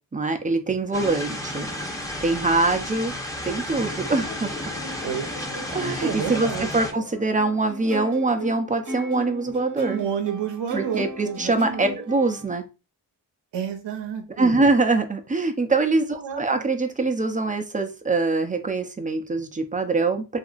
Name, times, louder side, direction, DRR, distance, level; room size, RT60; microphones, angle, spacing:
voice 1, 0.1-1.7 2.2-3.1 3.4-4.5 5.7-10.0 10.7-12.6 14.4-20.4, right 3 dB, 20° right, 6 dB, 0.5 m, -23 dB
sound 1, 0.9-6.9, left 1 dB, 10° left, 0.8 m, -32 dB
sound 2, 1.4-8.5, left 3 dB, 70° left, 1.1 m, -44 dB
voice 2, 6.0-6.7 9.9-11.9 13.5-14.7 16.2-16.6, right 8 dB, 80° right, 5 dB, 0.7 m, -30 dB
sound 3, 7.3-12.4, equal, 45° right, 1.1 m, -36 dB
2.8 x 2.5 x 2.4 m, 0.30 s
cardioid pair, 50°, 42 cm